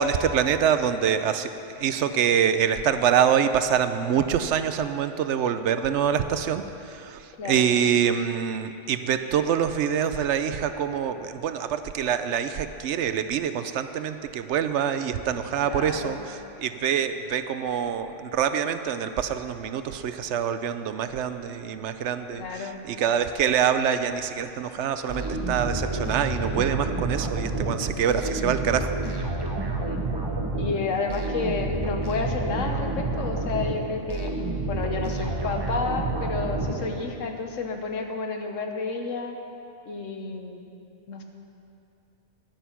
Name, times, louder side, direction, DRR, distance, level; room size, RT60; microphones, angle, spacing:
voice 1, 0.0-29.3, right 8 dB, 70° right, 10 dB, 0.9 m, -25 dB
voice 2, 7.4-7.7 15.6-16.2 22.4-22.8 28.2-28.6 29.8-30.0 30.6-34.3 34.7-39.4 39.8-40.7 41.1-41.2, left 4 dB, 90° left, 4 dB, 1.4 m, -31 dB
sound 1, 25.1-37.3, right 2 dB, 20° right, 1.0 m, -29 dB
12.5 x 9.2 x 5.8 m, 2.7 s
omnidirectional pair, 1.3 m